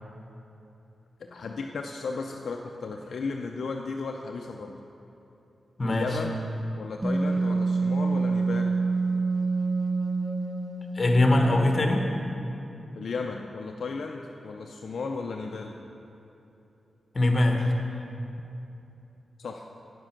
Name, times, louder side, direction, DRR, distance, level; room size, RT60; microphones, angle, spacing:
voice 1, 1.3-4.7 5.8-6.4 6.7-8.8 13.0-15.8 19.4-19.6, left 4 dB, 70° left, 2 dB, 0.5 m, -34 dB
voice 2, 5.8-6.2 10.9-12.1 17.1-17.7, left 1 dB, 35° left, 2 dB, 1.3 m, -22 dB
Wind instrument woodwind instrument, 7.0-11.4, right 3 dB, 35° right, 0.8 m, -26 dB
9.6 x 7.6 x 5.9 m, 2.9 s
cardioid pair, 70°, 0 cm